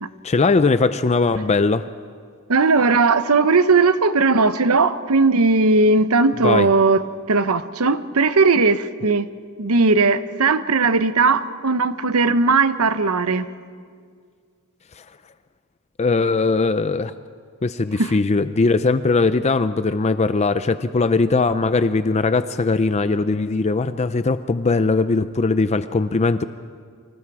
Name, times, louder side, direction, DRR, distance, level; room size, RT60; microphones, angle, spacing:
voice 1, 0.2-1.8 6.4-6.7 15.0-15.1 16.0-17.1 17.6-26.4, left 3 dB, 30° left, 0.5 m, -20 dB
voice 2, 2.5-9.3 9.6-13.5 18.0-18.1, right 3 dB, 80° right, 0.9 m, -18 dB
28.5 x 25.5 x 4.9 m
head